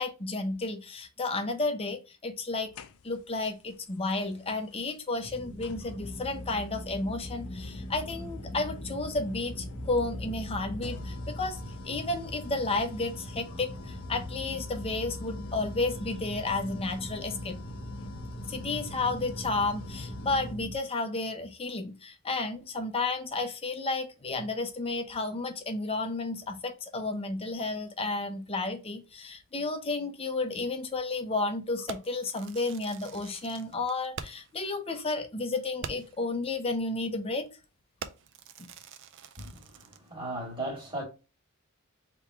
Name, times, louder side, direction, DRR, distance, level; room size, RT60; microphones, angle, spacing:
voice 1, 0.0-2.7 3.0-17.6 18.5-37.5, left 3 dB, 25° left, 0.7 m, -32 dB
sound 1, 2.7-3.4 4.7-4.8 5.6-20.6, left 4 dB, 70° left, 0.5 m, -45 dB
sound 2, 5.2-20.8, equal, ahead, 1.0 m, -41 dB
Fireworks, 31.9-34.6 34.9-35.0 35.4-35.5 35.8-36.3 36.9-37.1 37.4-37.6 38.0-40.1, right 6 dB, 55° right, 0.4 m, -44 dB
voice 2, 39.4-41.0, right 1 dB, 20° right, 1.9 m, -37 dB
3.5 x 3.0 x 4.5 m
head